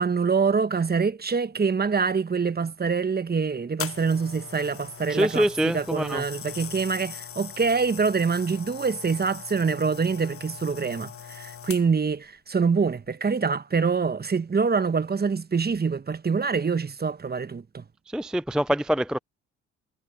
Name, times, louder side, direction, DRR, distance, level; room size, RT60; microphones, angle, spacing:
voice 1, 0.0-17.8, right 5 dB, 30° right, 1.3 m, -25 dB
sound 1, 3.8-12.1 12.9-13.1, left 8 dB, 40° left, 1.1 m, -40 dB
voice 2, 5.1-6.2 18.1-19.2, equal, ahead, 0.4 m, -25 dB
hypercardioid pair, 50°, 33 cm